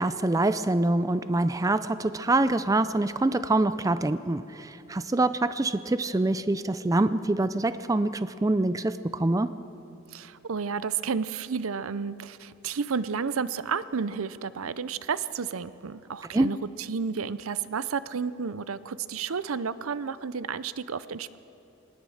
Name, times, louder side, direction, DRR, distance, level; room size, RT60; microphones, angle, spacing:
voice 1, 0.0-9.5 16.3-16.5, right 2 dB, 15° right, 13 dB, 0.4 m, -25 dB
voice 2, 10.1-21.4, right 6 dB, 85° right, 15 dB, 0.6 m, -31 dB
21.5 x 19.0 x 6.5 m, 2.9 s
head